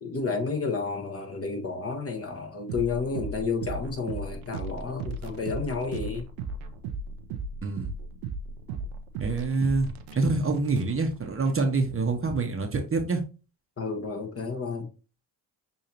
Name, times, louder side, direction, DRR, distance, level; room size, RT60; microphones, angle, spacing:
voice 1, 0.0-6.3 13.8-14.9, left 4 dB, 30° left, 1.3 m, -31 dB
sound 1, 2.7-12.3, right 4 dB, 85° right, 0.8 m, -37 dB
voice 2, 7.6-7.9 9.2-13.2, right 3 dB, 25° right, 1.0 m, -26 dB
6.7 x 2.8 x 2.8 m
supercardioid pair, 65°, 49 cm